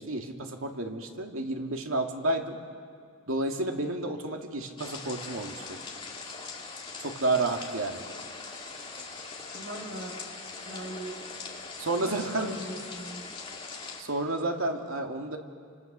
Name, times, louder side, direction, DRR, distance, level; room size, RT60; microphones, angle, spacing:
voice 1, 0.0-2.6 3.3-5.8 7.0-8.0 8.9-9.0 11.8-12.5 14.0-15.4, right 2 dB, 75° right, 3 dB, 2.3 m, -31 dB
sound 1, 4.8-14.0, left 4 dB, 25° left, 2.3 m, -41 dB
voice 2, 9.5-10.1 10.6-11.2 12.0-13.2, right 1 dB, 50° right, 0 dB, 4.3 m, -40 dB
30.0 x 25.5 x 6.8 m, 2.2 s
head